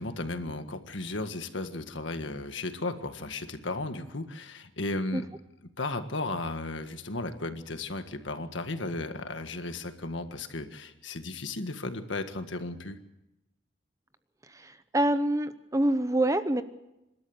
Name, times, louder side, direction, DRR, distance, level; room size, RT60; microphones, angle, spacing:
voice 1, 0.0-5.3 5.8-13.0, left 2 dB, 90° left, 8 dB, 1.7 m, -35 dB
voice 2, 14.5-16.6, right 1 dB, 15° right, 11 dB, 0.8 m, -26 dB
27.0 x 13.0 x 8.0 m, 0.94 s
head